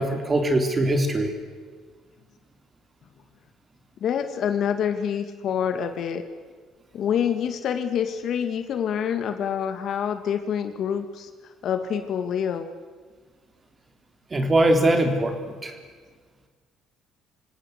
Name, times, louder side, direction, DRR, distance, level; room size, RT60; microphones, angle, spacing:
voice 1, 0.0-1.3 14.3-15.7, right 1 dB, 25° right, 6 dB, 3.4 m, -22 dB
voice 2, 4.0-6.2 6.9-11.3 11.6-12.7, left 8 dB, 60° left, 8 dB, 2.0 m, -26 dB
26.5 x 17.5 x 8.2 m, 1.5 s
cardioid pair, 115°, 0 cm